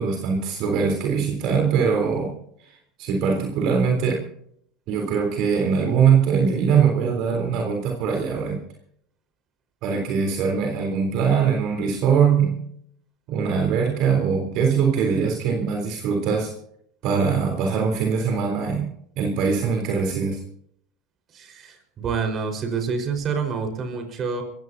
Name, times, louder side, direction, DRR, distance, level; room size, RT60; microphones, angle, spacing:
voice 1, 0.0-2.3 3.0-4.2 4.9-8.6 9.8-12.6 13.3-16.5 17.0-18.9 19.2-20.4, right 6 dB, 60° right, 2 dB, 3.7 m, -22 dB
voice 2, 21.3-24.4, right 5 dB, 40° right, 5 dB, 4.7 m, -27 dB
26.5 x 15.5 x 2.8 m, 0.68 s
hypercardioid pair, 95°, 0 cm